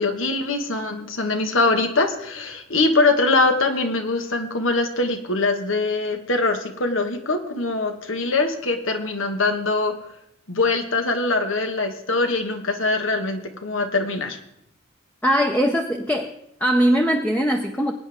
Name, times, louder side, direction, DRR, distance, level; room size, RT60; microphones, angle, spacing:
voice 1, 0.0-9.9 10.5-14.4, left 3 dB, 75° left, 6 dB, 1.7 m, -23 dB
voice 2, 15.2-16.3 16.6-17.9, equal, 10° left, 2 dB, 0.8 m, -20 dB
22.5 x 9.6 x 3.6 m, 0.76 s
head